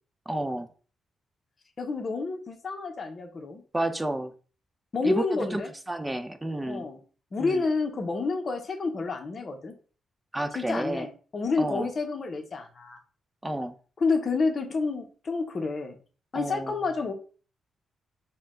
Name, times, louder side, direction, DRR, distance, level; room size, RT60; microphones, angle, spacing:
voice 1, 0.3-0.7 3.7-4.3 5.0-5.6 5.9-6.9 7.4-7.6 10.3-11.1 11.6-11.9 13.4-13.7 16.3-16.7, right 1 dB, 10° right, 8 dB, 0.4 m, -30 dB
voice 2, 1.8-3.6 4.9-5.7 6.7-7.0 7.3-9.7 10.5-13.0 14.0-16.0 16.3-17.1, left 4 dB, 40° left, 4 dB, 0.8 m, -29 dB
4.2 x 2.2 x 3.7 m, 0.39 s
cardioid pair, 120°, 0 cm